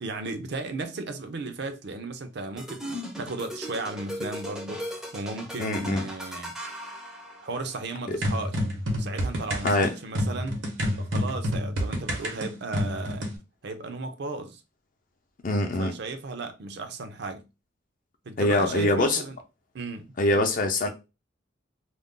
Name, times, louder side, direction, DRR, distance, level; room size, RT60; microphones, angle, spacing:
voice 1, 0.0-6.6 7.4-8.6 9.0-10.6 11.0-13.2 13.6-14.6 15.8-17.5 18.3-19.4 19.7-20.5, right 3 dB, 65° right, 0.5 m, -35 dB
sound 1, 2.6-7.7, equal, 5° right, 0.5 m, -38 dB
voice 2, 5.6-6.1 8.1-8.2 9.6-9.9 15.4-15.9 18.4-19.2 20.2-20.9, left 1 dB, 45° left, 0.6 m, -24 dB
sound 2, 8.2-13.4, equal, 85° right, 0.9 m, -28 dB
2.4 x 2.0 x 3.6 m
head